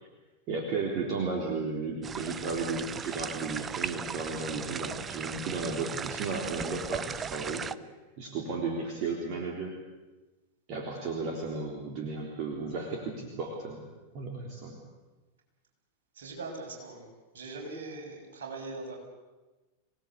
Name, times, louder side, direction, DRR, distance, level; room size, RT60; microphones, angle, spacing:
voice 1, 0.5-7.7 8.2-9.7 10.7-13.8 14.1-14.8, right 4 dB, 40° right, 0 dB, 3.7 m, -34 dB
sound 1, 2.0-7.7, right 7 dB, 20° right, 0.7 m, -37 dB
voice 2, 16.1-19.0, right 3 dB, 60° right, 0 dB, 6.8 m, -41 dB
26.0 x 18.5 x 8.4 m, 1.2 s
figure-of-eight pair, 90°, 0 cm